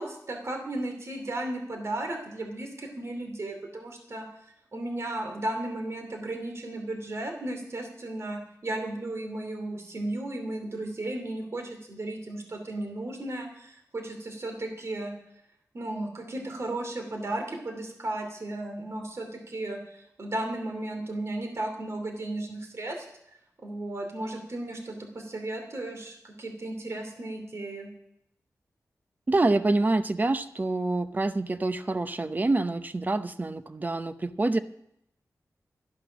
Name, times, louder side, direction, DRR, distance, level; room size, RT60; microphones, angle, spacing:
voice 1, 0.0-4.3 4.7-15.1 15.7-23.0 23.6-27.9, right 1 dB, 50° right, 4 dB, 2.8 m, -35 dB
voice 2, 29.3-34.6, right 2 dB, 30° right, 11 dB, 0.8 m, -26 dB
13.0 x 11.5 x 6.2 m, 0.76 s
wide cardioid pair, 120°, 6 cm